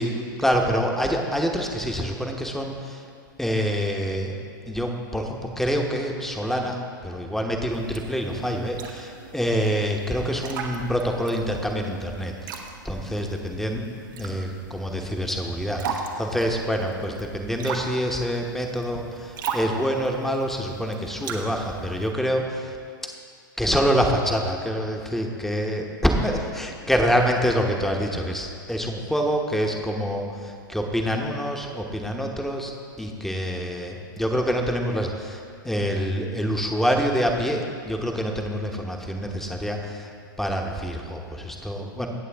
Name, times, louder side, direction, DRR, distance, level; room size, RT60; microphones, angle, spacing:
voice 1, 0.0-3.0 3.4-4.4 4.7-22.8 23.6-40.1 40.4-42.1, equal, 5° left, 2 dB, 1.0 m, -26 dB
sound 1, 7.7-22.1, right 5 dB, 70° right, 1.1 m, -38 dB
17.5 x 6.8 x 3.5 m, 2.3 s
hypercardioid pair, 110°, 11 cm